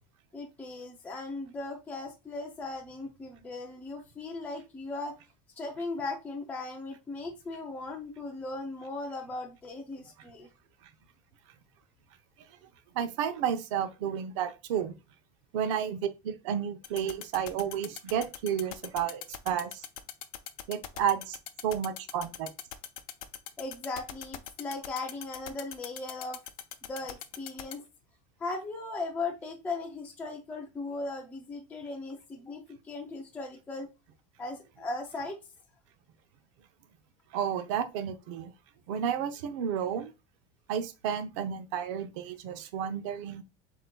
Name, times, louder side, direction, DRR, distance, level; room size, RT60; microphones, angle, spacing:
voice 1, 0.3-5.2 5.6-10.5 23.6-26.4 26.8-27.8 28.4-33.9 34.4-35.4, left 3 dB, 10° left, 0.4 m, -38 dB
voice 2, 12.9-14.9 15.5-19.8 20.7-21.4 21.6-22.5 37.3-38.5 38.9-40.1 40.7-43.4, right 8 dB, 55° right, 0.8 m, -31 dB
sound 1, 16.8-27.7, left 12 dB, 70° left, 0.7 m, -40 dB
7.8 x 2.8 x 2.2 m
supercardioid pair, 170°, 19 cm